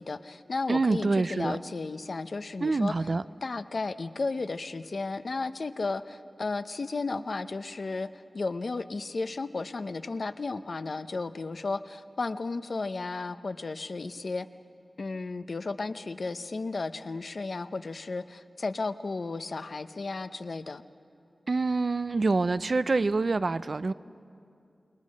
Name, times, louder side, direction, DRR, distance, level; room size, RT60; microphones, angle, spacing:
voice 1, 0.0-3.1 3.4-8.1 8.3-14.5 15.0-20.8, left 3 dB, 70° left, 11 dB, 0.7 m, -34 dB
voice 2, 0.7-1.6 2.6-3.2 21.5-23.9, right 3 dB, 65° right, 15 dB, 0.5 m, -26 dB
28.5 x 20.0 x 6.5 m, 2.5 s
wide cardioid pair, 55°, 0 cm